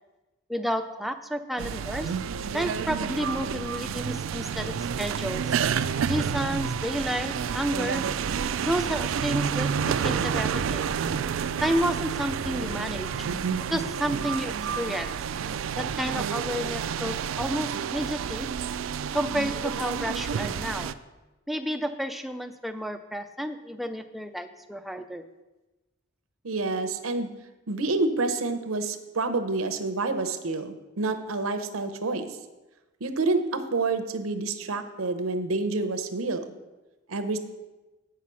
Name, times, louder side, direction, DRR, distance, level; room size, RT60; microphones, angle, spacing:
voice 1, 0.5-2.1 2.5-5.6 6.1-8.1 8.6-10.9 11.6-13.1 13.7-15.2 15.8-18.5 19.1-20.9 21.5-25.3, equal, ahead, 7 dB, 0.4 m, -31 dB
sound 1, 1.6-20.9, right 7 dB, 70° right, 0.3 m, -29 dB
voice 2, 26.4-27.3 27.7-32.3 33.0-36.5 37.1-37.4, right 3 dB, 90° right, 10 dB, 0.8 m, -28 dB
8.3 x 5.8 x 6.1 m, 1.1 s
head